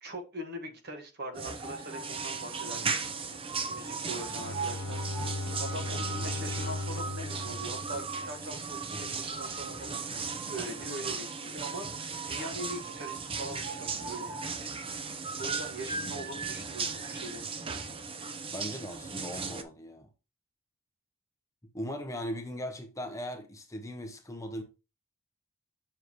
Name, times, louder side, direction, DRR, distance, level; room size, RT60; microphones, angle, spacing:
voice 1, 0.0-5.1 5.6-14.4 15.4-17.5, right 1 dB, 45° right, 1.5 m, -42 dB
sound 1, 1.3-19.6, right 5 dB, 25° right, 0.6 m, -36 dB
Bowed string instrument, 4.2-8.8, left 2 dB, 85° left, 1.0 m, -37 dB
voice 2, 15.9-16.3 18.5-20.1 21.7-24.6, equal, 15° left, 0.8 m, -39 dB
7.3 x 6.4 x 2.9 m
head